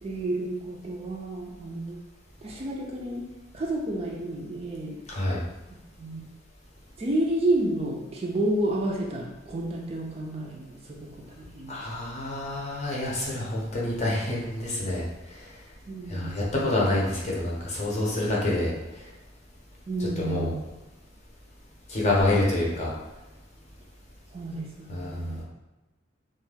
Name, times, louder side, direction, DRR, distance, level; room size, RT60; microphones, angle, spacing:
voice 1, 0.0-2.0 2.4-3.3 3.5-5.0 6.0-6.3 7.0-11.8 15.9-16.7 19.9-20.6 24.3-25.4, right 1 dB, 30° right, -1 dB, 0.4 m, -30 dB
voice 2, 5.1-5.4 11.7-15.0 15.3-15.5 16.1-18.7 20.2-20.5 21.9-22.9 24.9-25.4, left 1 dB, 35° left, -5 dB, 0.7 m, -27 dB
2.3 x 2.2 x 3.3 m, 1.1 s
head